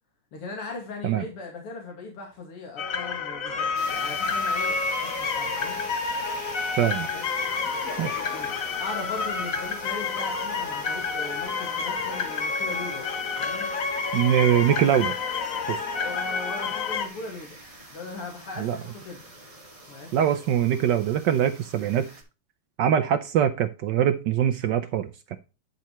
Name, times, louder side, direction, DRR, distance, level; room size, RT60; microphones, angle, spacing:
voice 1, 0.3-5.8 7.1-7.2 7.6-7.7 8.3-13.1 13.4-13.7 15.9-17.6 17.9-19.3 19.9-20.4, left 3 dB, 85° left, 0 dB, 3.0 m, -39 dB
sound 1, 2.8-17.1, left 5 dB, 50° left, 1.2 m, -29 dB
sound 2, 3.7-22.2, right 1 dB, 15° right, 1.9 m, -44 dB
voice 2, 6.8-7.1 8.0-8.2 14.1-15.2 15.7-15.8 18.6-18.8 20.1-22.1 22.8-25.4, right 10 dB, 75° right, 9 dB, 1.1 m, -23 dB
10.5 x 5.3 x 3.0 m, 0.31 s
omnidirectional pair, 2.4 m